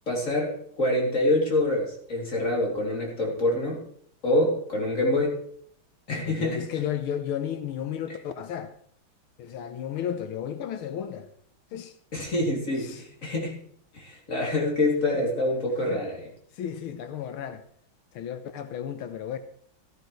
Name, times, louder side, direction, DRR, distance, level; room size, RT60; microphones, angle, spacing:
voice 1, 0.1-3.8 4.2-5.4 6.1-6.7 12.1-13.6 13.9-16.2, left 1 dB, 35° left, 3.3 m, -26 dB
voice 2, 6.1-8.7 9.4-11.3 11.7-11.9 12.8-13.0 15.1-15.2 15.9-16.0 16.5-17.6 18.1-19.4, left 9 dB, 80° left, 1.7 m, -33 dB
14.0 x 13.0 x 3.2 m
omnidirectional pair, 2.3 m